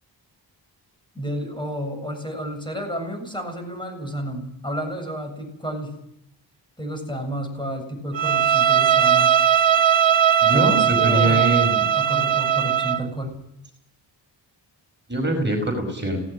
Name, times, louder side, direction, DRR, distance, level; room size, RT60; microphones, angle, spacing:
voice 1, 1.1-5.9 6.8-9.4 10.5-11.7 11.9-13.3, right 1 dB, 10° left, 3 dB, 7.6 m, -31 dB
Bowed string instrument, 8.1-13.1, right 9 dB, 80° right, 1.1 m, -19 dB
voice 2, 10.4-11.8 15.1-16.2, right 1 dB, 25° right, 2 dB, 5.1 m, -23 dB
19.0 x 18.0 x 9.4 m, 0.76 s
wide cardioid pair, 140°, 45 cm